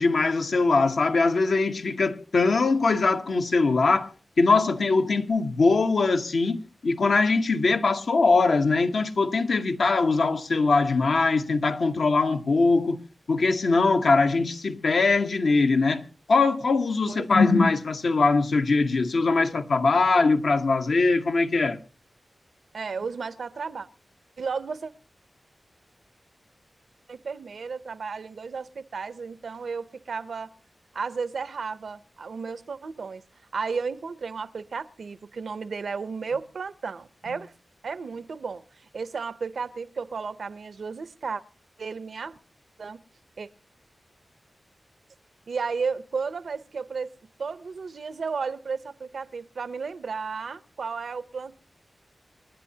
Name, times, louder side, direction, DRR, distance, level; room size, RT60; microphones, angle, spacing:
voice 1, 0.0-4.1 4.4-13.0 13.3-16.0 16.3-21.8 37.3-37.4, left 3 dB, 75° left, 1.0 m, -22 dB
voice 2, 22.7-23.9 24.4-24.9 27.1-30.5 30.9-33.2 33.5-37.5 37.8-38.6 38.9-41.4 41.8-42.4 42.8-43.0 43.4-43.5 45.5-47.1 47.4-51.6, right 5 dB, 80° right, 0.6 m, -33 dB
28.0 x 10.0 x 2.8 m
wide cardioid pair, 100°, 0 cm